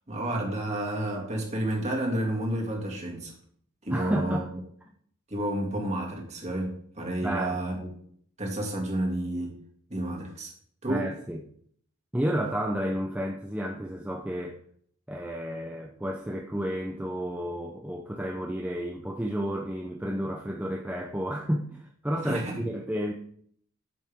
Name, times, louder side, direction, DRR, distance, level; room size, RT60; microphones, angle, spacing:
voice 1, 0.1-3.3 3.8-4.4 5.3-7.9 8.4-9.5 9.9-10.5 10.8-11.1 22.2-22.6, right 1 dB, 30° right, -1 dB, 2.6 m, -30 dB
voice 2, 3.9-4.5 7.2-7.6 10.9-11.4 12.1-14.6 15.1-23.1, equal, 5° right, 0 dB, 0.6 m, -31 dB
11.5 x 7.6 x 3.6 m, 0.63 s
head